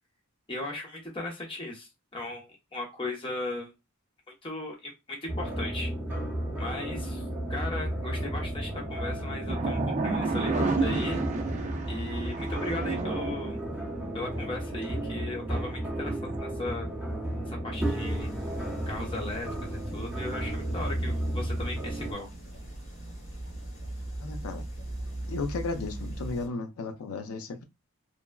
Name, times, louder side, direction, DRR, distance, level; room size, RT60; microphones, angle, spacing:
voice 1, 0.5-3.7 4.4-5.9 6.6-11.2 11.9-13.6 14.1-16.9 17.5-18.3 18.9-22.3, left 2 dB, 25° left, 0.8 m, -37 dB
sound 1, 5.3-22.1, right 1 dB, 10° right, 0.9 m, -33 dB
sound 2, 9.5-13.9 16.0-16.4, right 3 dB, 35° right, 0.4 m, -30 dB
sound 3, 17.7-26.5, right 1 dB, 60° left, 1.8 m, -40 dB
voice 2, 24.2-24.7 25.3-27.6, left 3 dB, 80° left, 0.5 m, -34 dB
3.2 x 2.2 x 2.2 m
head